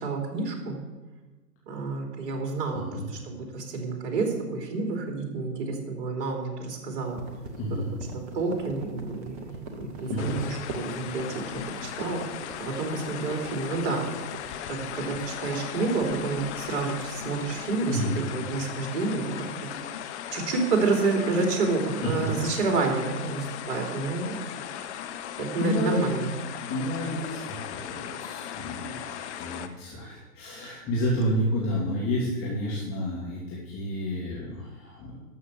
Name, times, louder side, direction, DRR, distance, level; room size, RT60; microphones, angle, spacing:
voice 1, 0.0-0.8 1.7-2.8 3.2-7.2 8.1-11.3 11.5-12.2 12.6-14.0 14.7-18.0 18.3-19.2 19.6-19.7 20.3-24.3 25.4-26.3, right 3 dB, 45° right, 1 dB, 3.2 m, -29 dB
voice 2, 2.7-3.1 7.6-7.9 10.1-10.4 17.9-18.2 19.6-19.9 22.0-22.3 24.3-24.4 25.6-26.3 26.7-35.2, equal, 25° left, -5 dB, 2.7 m, -30 dB
sound 1, 7.0-14.5, right 3 dB, 10° right, 0.3 m, -40 dB
sound 2, 10.2-29.7, left 10 dB, 45° left, 1.0 m, -38 dB
12.5 x 6.5 x 7.0 m, 1.2 s
hypercardioid pair, 115°, 48 cm